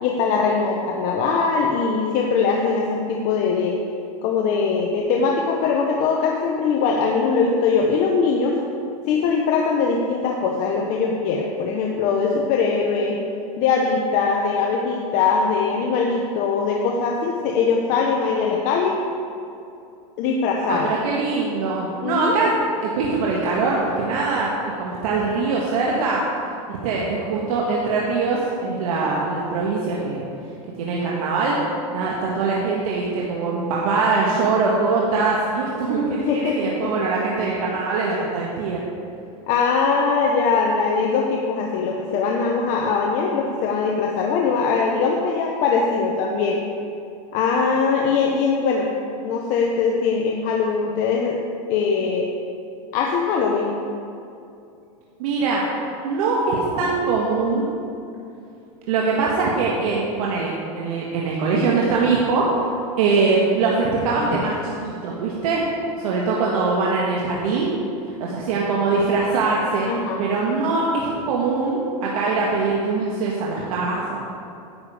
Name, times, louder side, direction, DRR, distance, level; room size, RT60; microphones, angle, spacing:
voice 1, 0.0-3.8 4.2-8.6 9.1-13.2 13.6-19.0 20.2-20.9 22.0-22.4 36.2-36.9 39.5-46.6 47.3-48.9 49.2-51.4 51.7-52.3 52.9-53.8 64.3-64.5 69.9-70.2, left 5 dB, 45° left, 0 dB, 1.0 m, -21 dB
voice 2, 20.7-22.5 22.8-24.5 24.8-26.2 26.7-30.2 30.8-31.6 31.9-38.8 55.2-55.6 56.0-57.7 58.9-62.7 63.0-65.6 66.0-67.7 68.0-69.9 70.2-74.2, right 4 dB, 70° right, -3 dB, 1.6 m, -22 dB
10.5 x 8.8 x 5.0 m, 2.6 s
supercardioid pair, 140°, 19 cm